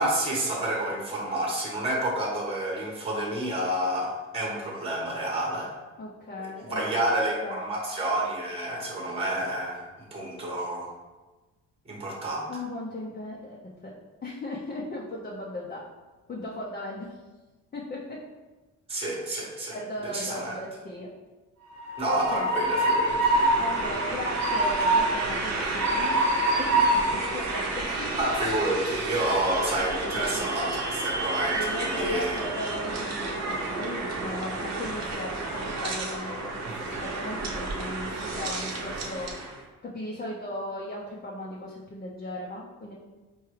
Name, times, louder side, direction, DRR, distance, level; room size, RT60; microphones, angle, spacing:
voice 1, 0.0-5.7 6.4-9.8 10.1-10.9 11.9-12.5 18.9-19.8 20.1-20.6 22.0-23.2 28.2-32.4 36.6-36.8, right 1 dB, 20° right, -3 dB, 1.0 m, -29 dB
voice 2, 6.0-6.8 7.4-7.6 12.5-13.6 13.8-13.9 14.2-15.8 16.3-17.2 17.7-18.2 19.7-21.1 22.1-22.5 23.6-26.2 26.6-26.7 27.3-28.2 30.1-30.5 31.5-39.3 39.8-42.9, left 1 dB, 30° left, -4 dB, 0.6 m, -37 dB
Train, 21.7-39.5, right 2 dB, 60° right, 0.8 m, -28 dB
4.7 x 2.3 x 3.2 m, 1.2 s
cardioid pair, 90°, 30 cm